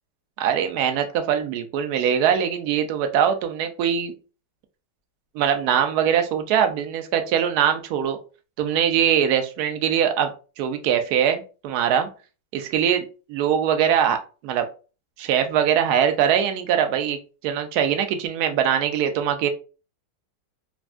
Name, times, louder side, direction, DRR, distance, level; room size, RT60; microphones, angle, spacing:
voice 1, 0.4-4.1 5.4-8.2 8.6-10.3 10.6-12.1 12.5-14.2 14.4-14.7 15.2-17.2 17.4-19.5, right 8 dB, 70° right, 7 dB, 1.0 m, -22 dB
3.4 x 2.2 x 2.4 m, 0.34 s
omnidirectional pair, 1.9 m